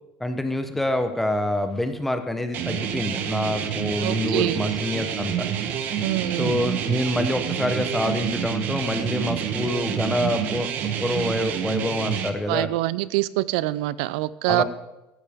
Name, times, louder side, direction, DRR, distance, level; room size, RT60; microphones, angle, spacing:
voice 1, 0.2-5.5 6.3-10.7 11.0-12.7 14.5-14.6, left 1 dB, 5° left, 8 dB, 0.8 m, -26 dB
sound 1, 2.5-12.3, right 8 dB, 45° right, 1.1 m, -28 dB
voice 2, 4.0-4.6 6.0-6.6 12.5-14.6, right 17 dB, 85° right, 18 dB, 0.5 m, -25 dB
14.5 x 12.5 x 3.6 m, 0.97 s
cardioid pair, 155°, 4 cm